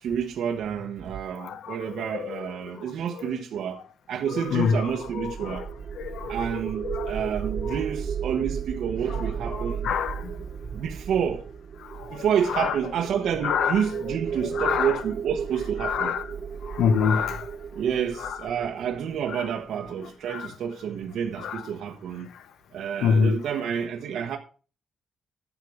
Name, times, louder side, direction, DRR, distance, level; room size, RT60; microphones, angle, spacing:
voice 1, 0.0-3.8 4.1-5.7 6.3-9.7 10.7-11.4 12.1-16.1 17.7-22.3 22.7-24.4, right 8 dB, 75° right, 1.3 m, -29 dB
voice 2, 1.4-3.4 4.3-5.7 5.9-7.3 7.5-7.8 9.1-10.4 11.8-12.8 13.4-14.2 14.4-15.0 15.8-16.3 16.6-17.6 18.2-18.4 19.3-19.5 20.0-20.5 21.4-21.7 22.3-22.4 23.0-23.4, left 6 dB, 85° left, 1.0 m, -28 dB
sound 1, 4.7-19.6, right 7 dB, 40° right, 1.0 m, -34 dB
11.5 x 8.1 x 4.9 m
cardioid pair, 135°, 0 cm